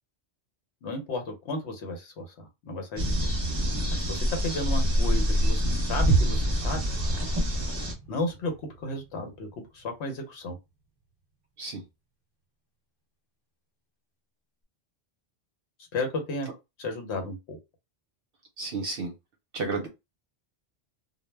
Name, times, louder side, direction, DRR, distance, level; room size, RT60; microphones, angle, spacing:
voice 1, 0.8-3.3 3.9-6.8 8.1-8.5 8.8-10.6 15.9-16.5 16.8-17.6, left 2 dB, 80° left, 1.0 m, -33 dB
sound 1, 3.0-7.9, equal, 30° right, 0.6 m, -26 dB
sound 2, 6.1-10.0 10.3-10.4, right 4 dB, 60° left, 1.0 m, -32 dB
voice 2, 18.6-19.1 19.5-19.9, right 3 dB, 65° right, 0.7 m, -31 dB
2.2 x 2.1 x 3.1 m
omnidirectional pair, 1.1 m